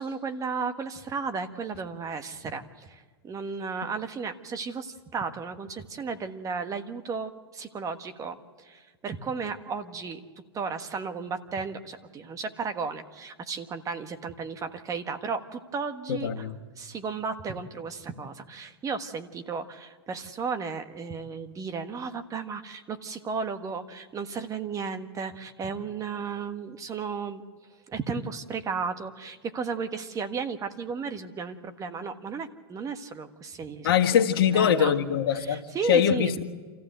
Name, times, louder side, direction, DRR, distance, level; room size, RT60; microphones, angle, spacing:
voice 1, 0.0-10.2 10.5-16.5 16.8-27.4 27.9-34.2 34.5-35.0 35.3-36.3, right 5 dB, 25° right, 9 dB, 1.5 m, -34 dB
voice 2, 16.1-16.5 33.8-35.6 35.9-36.4, left 8 dB, 70° left, 4 dB, 1.7 m, -22 dB
27.5 x 15.0 x 7.9 m, 1.5 s
hypercardioid pair, 110°, 13 cm